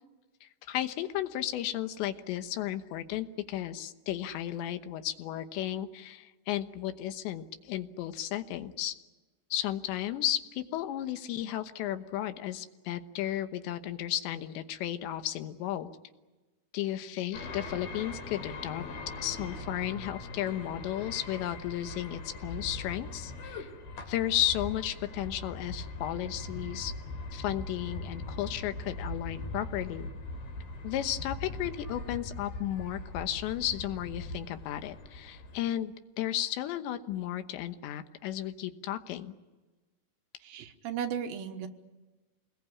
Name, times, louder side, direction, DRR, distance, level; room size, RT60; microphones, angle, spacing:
voice 1, 0.4-9.0 9.5-15.9 16.7-18.8 19.2-23.7 24.1-26.9 27.3-30.1 30.8-39.3, left 12 dB, 85° left, 9 dB, 3.4 m, -34 dB
sound 1, 17.3-35.6, left 2 dB, 60° left, 4.7 m, -41 dB
voice 2, 40.4-41.7, right 8 dB, 65° right, 6 dB, 2.8 m, -35 dB
27.5 x 21.0 x 8.6 m, 1.2 s
omnidirectional pair, 5.0 m